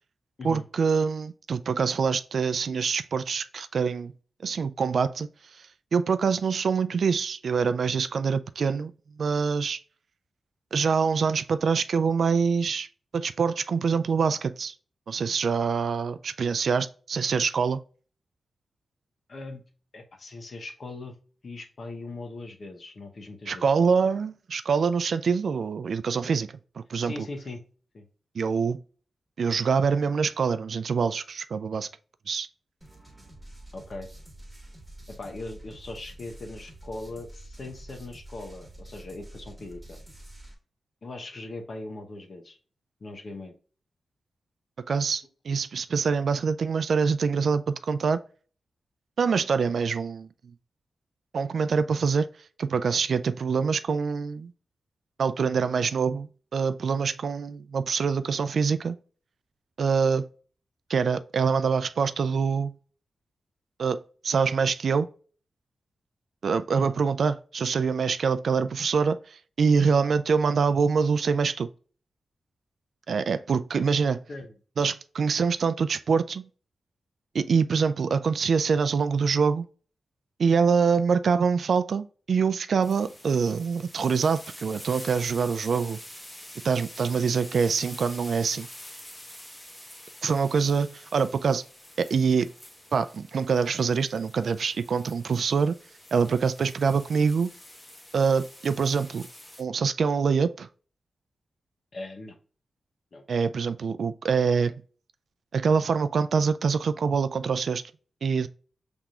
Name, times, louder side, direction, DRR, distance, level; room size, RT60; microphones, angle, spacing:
voice 1, 0.4-4.1 4.4-5.3 5.9-8.9 9.2-9.8 10.7-12.9 13.1-14.7 15.1-17.8 23.5-26.5 26.8-27.1 28.4-28.8 29.4-31.9 32.3-32.5 44.9-48.2 49.2-50.3 51.3-52.3 52.6-54.5 55.2-59.0 59.8-60.3 60.9-62.7 63.8-65.1 66.4-71.7 73.1-74.2 74.8-76.5 77.3-79.7 80.4-86.0 86.6-88.7 90.2-91.6 92.0-92.5 92.9-95.8 96.1-97.5 98.1-99.3 99.6-100.7 103.3-104.7 105.5-107.8 108.2-108.5, right 5 dB, 70° right, 0.3 m, -25 dB
voice 2, 19.3-19.6 19.9-21.2 21.4-23.8 27.0-27.6 27.9-28.1 33.7-34.1 35.1-40.0 41.0-42.6 43.0-43.5 66.8-66.9 69.6-70.0 73.7-73.8 74.3-74.5 101.9-102.4 103.1-103.2, left 2 dB, 50° left, 0.9 m, -40 dB
sound 1, 32.8-40.5, right 1 dB, 5° right, 1.4 m, -47 dB
sound 2, 82.8-99.6, left 1 dB, 15° left, 1.0 m, -46 dB
5.8 x 3.5 x 2.4 m
wide cardioid pair, 110°, 0 cm